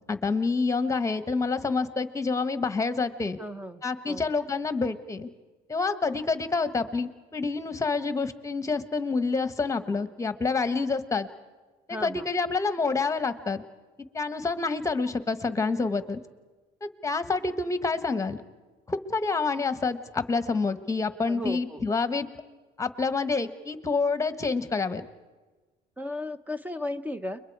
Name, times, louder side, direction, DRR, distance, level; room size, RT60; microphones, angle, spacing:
voice 1, 0.1-3.4 3.8-5.3 5.7-11.3 11.9-13.6 14.1-16.2 16.8-18.4 18.9-22.3 22.8-25.0, left 4 dB, 20° left, 11 dB, 1.3 m, -28 dB
voice 2, 3.4-4.2 11.9-12.3 21.3-21.8 26.0-27.4, left 1 dB, 10° right, 11 dB, 0.8 m, -35 dB
30.0 x 22.5 x 4.8 m, 1.3 s
cardioid pair, 110°, 17 cm